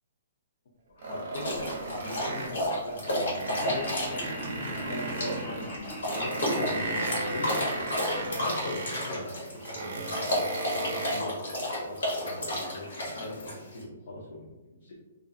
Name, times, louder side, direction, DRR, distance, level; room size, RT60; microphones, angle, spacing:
voice 1, 0.9-14.9, left 2 dB, 55° left, -4 dB, 0.5 m, -41 dB
sound 1, 1.0-2.6 3.0-5.7 6.1-9.1 9.6-11.2, right 2 dB, 50° right, 0.5 m, -36 dB
sound 2, 1.3-13.8, left 1 dB, 75° left, 1.0 m, -32 dB
Laughter, 3.6-9.8, left 1 dB, 10° left, 0.5 m, -41 dB
2.4 x 2.3 x 2.6 m, 1.1 s
hypercardioid pair, 170°, 0 cm